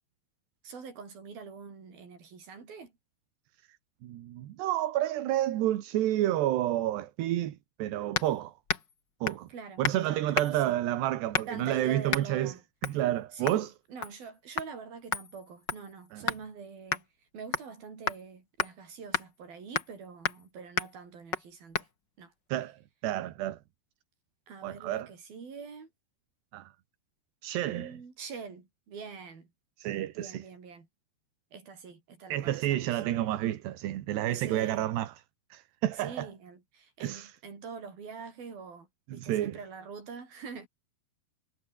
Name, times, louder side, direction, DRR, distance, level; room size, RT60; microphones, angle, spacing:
voice 1, 0.6-2.9 9.5-10.8 11.5-12.6 13.3-17.1 17.3-21.9 22.2-22.3 24.5-25.9 27.7-29.5 30.2-30.9 31.5-33.0 34.3-34.9 36.0-40.7, right 5 dB, 60° right, 7.3 m, -45 dB
voice 2, 4.0-8.5 9.2-9.5 9.8-12.5 12.8-13.7 16.1-16.2 22.5-23.6 24.6-25.1 26.5-26.7 27.4-27.9 29.8-30.4 32.3-35.1 35.5-36.3 37.0-37.3 39.1-39.6, right 13 dB, 75° right, 3.7 m, -30 dB
sound 1, 8.1-8.3 8.7-8.9 9.3-9.5 9.8-10.0 10.3-10.7 11.3-11.6 12.1-12.3 12.8-13.0 13.5-13.6 14.0-14.3 14.6-14.7 15.1-16.4 16.9-17.0 17.5-17.8 18.1-18.2 18.6-18.7 19.1-19.3 19.7-20.0 20.2-20.5 20.8-20.9 21.3-21.5 21.7-21.9, left 6 dB, 40° left, 1.7 m, -32 dB
omnidirectional pair, 4.9 m